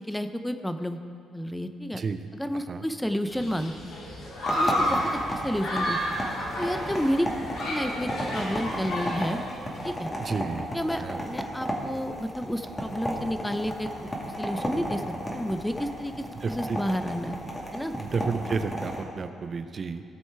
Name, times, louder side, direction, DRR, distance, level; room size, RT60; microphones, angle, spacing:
voice 1, 0.0-1.0 1.3-2.0 2.3-3.9 4.5-6.0 6.6-7.3 7.7-9.4 9.8-10.1 10.7-13.9 14.2-15.0 15.3-17.4 17.7-17.9, equal, 5° left, 8 dB, 0.5 m, -30 dB
voice 2, 1.9-2.3 2.5-2.8 4.9-5.0 10.2-10.7 11.0-11.2 16.4-16.8 18.0-20.0, right 5 dB, 45° right, 9 dB, 0.6 m, -31 dB
Human group actions, 3.3-9.9, equal, 80° left, 2.9 m, -31 dB
sound 1, 4.4-19.0, equal, 20° left, 2.0 m, -34 dB
17.0 x 6.2 x 4.6 m, 2.5 s
cardioid pair, 90°, 0 cm